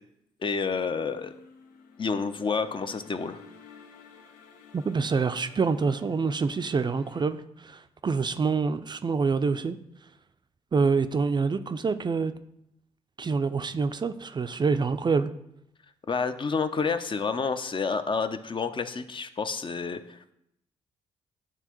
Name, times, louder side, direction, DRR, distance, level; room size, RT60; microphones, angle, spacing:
voice 1, 0.4-1.3 2.0-3.4 16.1-20.3, left 5 dB, 35° left, 0.6 m, -29 dB
sound 1, 0.9-7.3, left 6 dB, 75° left, 0.8 m, -52 dB
voice 2, 4.7-9.8 10.7-12.3 13.2-15.3, right 4 dB, 30° right, 0.4 m, -26 dB
9.0 x 3.5 x 3.0 m
hypercardioid pair, 45°, 14 cm